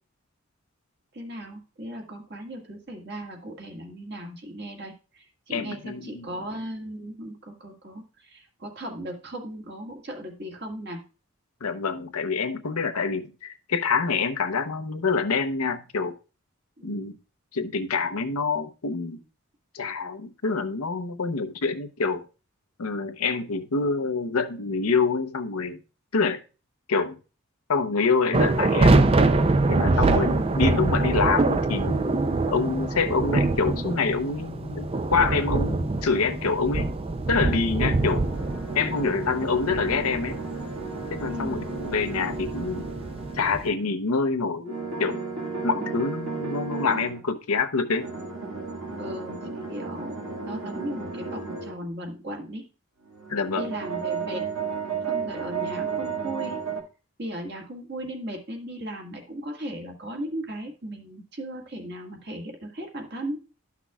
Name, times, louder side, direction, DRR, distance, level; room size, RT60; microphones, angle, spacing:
voice 1, 1.1-11.0 16.8-17.2 29.9-30.5 41.2-41.6 45.8-46.0 49.0-52.7 53.5-54.5 55.1-56.6 57.2-63.5, right 1 dB, 50° right, 1 dB, 1.8 m, -37 dB
voice 2, 5.5-6.3 11.6-16.1 16.8-17.1 17.5-19.2 19.7-22.2 22.8-25.8 26.1-26.4 26.9-27.2 27.7-29.1 29.7-30.3 30.5-32.1 32.5-36.9 37.3-38.2 38.7-40.4 41.1-42.8 43.3-45.2 45.6-48.1 53.3-53.7, left 4 dB, 85° left, 7 dB, 0.8 m, -26 dB
sound 1, 28.3-43.7, right 2 dB, 25° right, 0.4 m, -25 dB
sound 2, 37.7-43.8 44.7-47.2 48.0-51.8 53.1-56.8, right 5 dB, 85° right, 1.9 m, -33 dB
12.5 x 5.9 x 2.3 m, 0.33 s
head